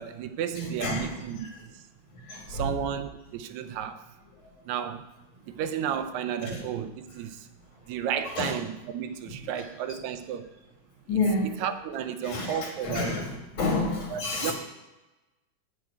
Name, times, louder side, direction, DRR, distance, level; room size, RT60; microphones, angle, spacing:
voice 1, 0.0-1.5 1.7-1.8 2.5-4.1 4.7-5.1 5.5-7.5 7.9-10.5 11.6-13.1 14.1-14.5, right 9 dB, 80° right, 9 dB, 1.8 m, -32 dB
voice 2, 0.6-1.5 2.1-2.7 6.4-6.6 8.3-8.5 9.3-9.6 11.1-11.6 12.2-14.5, left 3 dB, 50° left, 1 dB, 1.9 m, -30 dB
7.8 x 7.1 x 4.6 m, 1.1 s
omnidirectional pair, 3.4 m